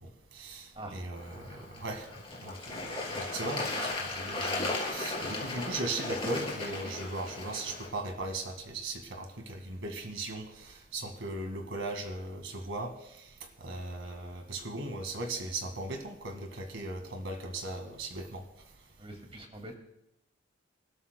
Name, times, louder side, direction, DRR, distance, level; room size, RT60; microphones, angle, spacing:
voice 1, 0.0-2.1 2.4-13.3 13.6-18.4, right 2 dB, 70° right, 5 dB, 1.9 m, -38 dB
Bird / Water, 1.2-7.9, left 2 dB, 25° left, 3.0 m, -36 dB
voice 2, 19.0-19.8, right 1 dB, 30° right, 3 dB, 2.3 m, -44 dB
26.5 x 13.0 x 2.3 m, 0.83 s
head